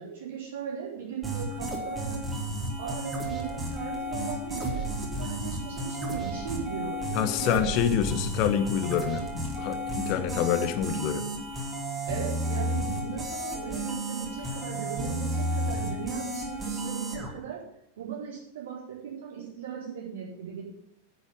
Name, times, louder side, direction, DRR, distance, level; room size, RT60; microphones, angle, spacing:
voice 1, 0.0-2.2 2.8-4.8 5.2-7.6 12.1-17.6 18.0-20.6, right 7 dB, 60° right, -4 dB, 4.5 m, -37 dB
sound 1, 1.2-17.3, right 1 dB, 15° right, 3.1 m, -32 dB
voice 2, 7.1-11.3, left 9 dB, 40° left, 10 dB, 1.2 m, -27 dB
10.5 x 7.1 x 7.4 m, 0.76 s
figure-of-eight pair, 90°, 0 cm